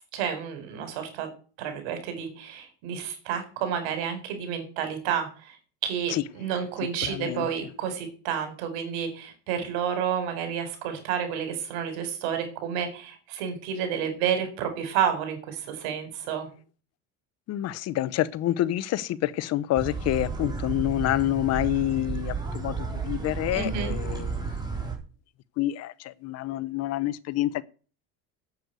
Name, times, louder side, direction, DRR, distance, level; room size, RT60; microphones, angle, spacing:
voice 1, 0.1-1.3 1.6-5.6 5.8-16.5 23.5-23.9, right 8 dB, 85° right, 4.6 m, -30 dB
voice 2, 7.0-7.5 17.5-24.5 25.6-27.6, left 14 dB, 50° left, 0.9 m, -28 dB
sound 1, 19.7-25.0, right 4 dB, 10° right, 3.8 m, -32 dB
8.7 x 8.2 x 9.3 m
cardioid pair, 125°, 32 cm